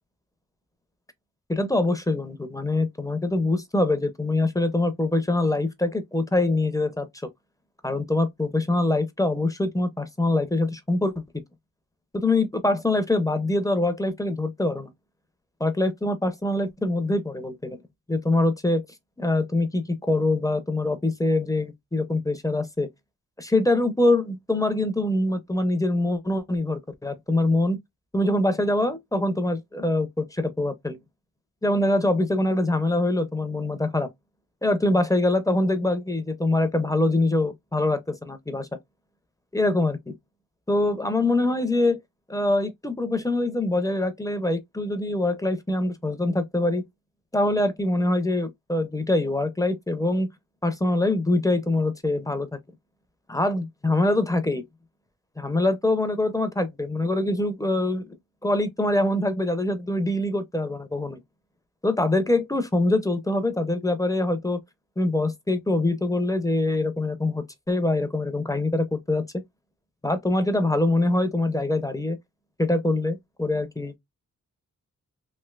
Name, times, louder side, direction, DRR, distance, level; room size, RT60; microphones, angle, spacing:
voice 1, 1.5-7.1 7.8-11.1 12.1-14.9 15.6-17.8 18.1-18.8 19.2-22.9 23.4-27.8 28.1-31.0 31.6-34.1 34.6-38.7 39.5-40.1 40.7-42.0 42.3-46.8 47.3-50.3 50.6-52.5 53.3-54.6 55.4-58.1 58.4-61.2 61.8-64.6 65.0-69.2 70.0-72.2 72.6-74.0, left 2 dB, 10° left, 0.5 m, -24 dB
3.2 x 2.7 x 2.2 m
wide cardioid pair, 110°, 32 cm